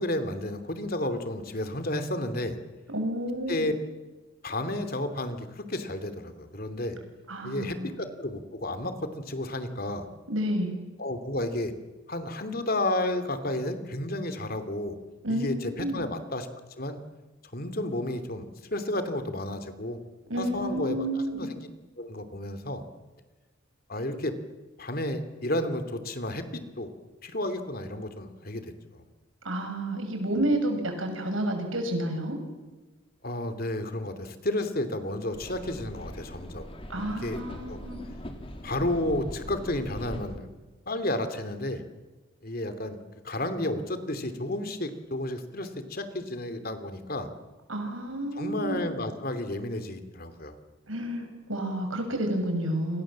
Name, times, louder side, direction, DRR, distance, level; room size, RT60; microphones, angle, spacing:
voice 1, 0.0-2.5 3.5-3.7 4.4-7.0 7.4-10.1 11.0-11.7 12.1-14.9 15.3-16.5 16.8-17.0 17.5-18.4 18.7-20.0 20.4-21.6 22.0-22.8 23.9-24.3 24.8-26.9 27.2-29.0 33.2-36.7 37.2-37.4 37.7-37.8 38.6-40.5 40.9-41.8 42.4-47.3 48.3-50.5, left 1 dB, 45° left, 9 dB, 2.9 m, -32 dB
voice 2, 2.9-3.7 7.3-7.9 10.3-10.7 15.2-15.5 15.8-16.0 20.3-21.5 29.4-32.4 36.9-38.0 47.7-48.8 50.9-53.0, right 1 dB, 75° right, 5 dB, 6.8 m, -30 dB
sound 1, 35.3-40.4, equal, 25° left, 3.2 m, -41 dB
29.5 x 26.0 x 7.6 m, 1.2 s
head